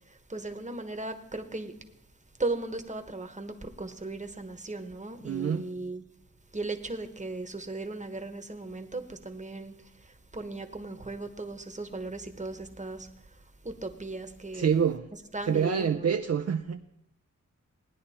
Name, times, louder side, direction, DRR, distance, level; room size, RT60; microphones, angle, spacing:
voice 1, 0.1-1.8 2.4-6.0 6.5-13.4 13.6-14.9 15.1-16.1, right 2 dB, 25° right, 1.2 m, -37 dB
voice 2, 5.2-5.7 14.5-15.0 15.5-16.8, right 7 dB, 50° right, 0.5 m, -26 dB
17.0 x 10.0 x 4.2 m
wide cardioid pair, 85°, 32 cm